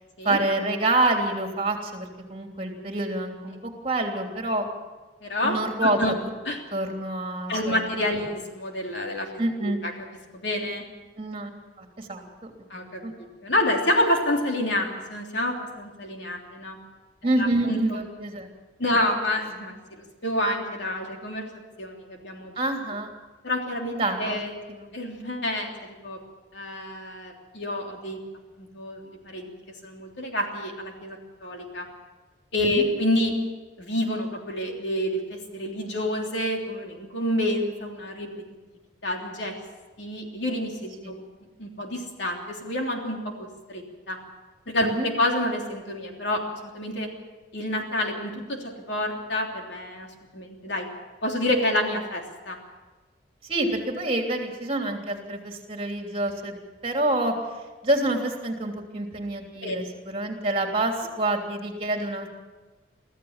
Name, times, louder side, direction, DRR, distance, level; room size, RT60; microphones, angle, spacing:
voice 1, 0.2-3.6 3.8-4.7 5.4-6.1 6.7-7.9 9.4-9.8 11.2-11.5 11.8-12.5 13.0-13.1 17.2-18.5 22.6-23.1 23.9-24.4 24.7-24.9 32.6-32.8 41.0-41.1 44.8-45.1 53.4-56.6 56.8-57.3 57.8-62.3, right 2 dB, 30° right, 2 dB, 3.2 m, -27 dB
voice 2, 5.2-6.1 6.4-6.6 7.5-9.3 9.6-9.9 10.3-10.8 12.7-13.0 13.4-16.8 17.4-18.0 18.8-22.5 23.4-24.6 24.9-26.2 26.5-28.2 28.6-29.0 29.2-29.5 29.8-31.9 32.5-33.3 33.8-38.3 39.0-39.6 40.0-41.2 41.6-44.2 44.7-47.1 47.5-50.1 50.3-50.9 51.2-52.6 59.6-59.8, left 1 dB, 65° left, 1 dB, 3.3 m, -28 dB
25.0 x 15.0 x 7.5 m, 1.3 s
head